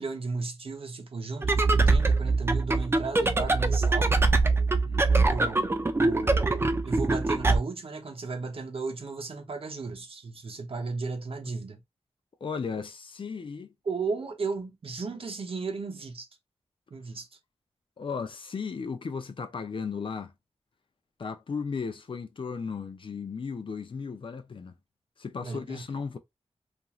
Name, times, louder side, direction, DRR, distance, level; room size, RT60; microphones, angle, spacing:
voice 1, 0.0-4.2 5.2-5.6 6.0-11.8 13.8-16.3 16.9-17.3 25.4-25.8, right 4 dB, 60° right, 0.7 m, -35 dB
sound 1, 1.4-7.6, right 3 dB, 20° right, 0.4 m, -23 dB
voice 2, 12.4-13.7 18.0-20.3 21.2-24.7 25.2-26.2, left 5 dB, 50° left, 0.5 m, -35 dB
3.0 x 2.5 x 2.3 m
wide cardioid pair, 100°, 11 cm